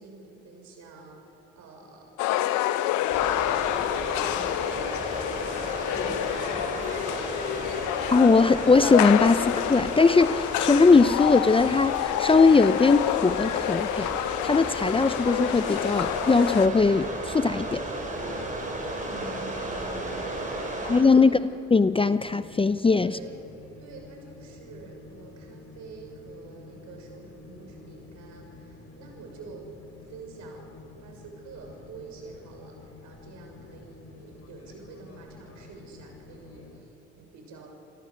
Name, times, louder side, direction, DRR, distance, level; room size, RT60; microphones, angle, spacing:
voice 1, 0.0-7.3 19.0-21.4 23.0-23.4 23.8-29.7 30.0-30.7 31.0-37.7, right 4 dB, 65° right, 2 dB, 6.3 m, -47 dB
sound 1, 2.2-16.7, left 14 dB, 75° left, 0.8 m, -28 dB
sound 2, 3.1-21.0, right 1 dB, 25° right, 6.6 m, -34 dB
voice 2, 8.1-14.1 14.4-17.8 20.8-21.4 21.7-23.2, left 4 dB, 20° left, 14 dB, 0.6 m, -20 dB
sound 3, 21.9-36.8, left 3 dB, 55° left, 5.8 m, -49 dB
28.5 x 17.0 x 6.5 m, 2.9 s
hypercardioid pair, 60°, 30 cm